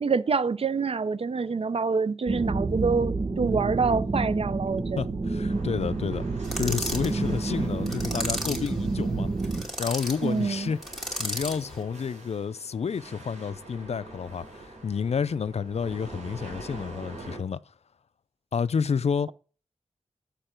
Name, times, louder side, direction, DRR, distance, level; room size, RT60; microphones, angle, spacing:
voice 1, 0.0-5.1 10.2-10.7, right 5 dB, 55° right, 0.5 m, -26 dB
sound 1, 2.3-9.6, right 3 dB, 35° right, 1.0 m, -29 dB
voice 2, 5.0-6.2 6.6-9.3 9.8-17.6 18.5-19.3, left 6 dB, 65° left, 0.4 m, -30 dB
sound 2, 5.5-17.4, right 2 dB, 80° right, 4.7 m, -45 dB
sound 3, 6.4-7.1 7.9-8.7 9.4-10.2 10.8-11.6, equal, ahead, 2.3 m, -33 dB
7.4 x 6.7 x 4.4 m
wide cardioid pair, 90°, 12 cm